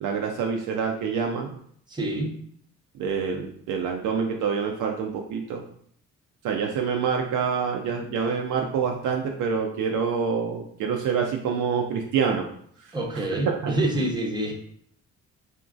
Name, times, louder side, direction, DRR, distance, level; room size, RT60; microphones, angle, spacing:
voice 1, 0.0-1.6 3.0-5.6 6.4-12.5 12.8-12.9 13.3-13.8, right 6 dB, 60° right, 2 dB, 0.5 m, -26 dB
voice 2, 1.9-2.3 12.9-14.5, right 1 dB, 10° right, 0 dB, 0.8 m, -27 dB
2.9 x 2.5 x 2.4 m, 0.63 s
hypercardioid pair, 55°, 37 cm